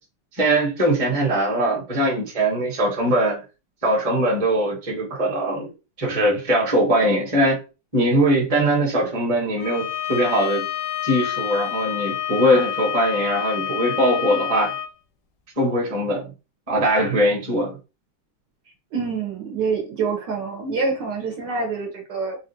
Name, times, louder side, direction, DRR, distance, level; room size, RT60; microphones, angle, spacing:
voice 1, 0.3-3.4 3.8-5.7 6.0-7.6 7.9-10.7 11.0-14.7 15.6-16.3 16.7-17.8, right 1 dB, 20° right, 1.0 m, -21 dB
Bowed string instrument, 9.6-14.9, left 11 dB, 75° left, 1.2 m, -28 dB
voice 2, 18.9-22.4, right 4 dB, 65° right, 1.3 m, -26 dB
4.2 x 2.3 x 2.8 m
omnidirectional pair, 2.3 m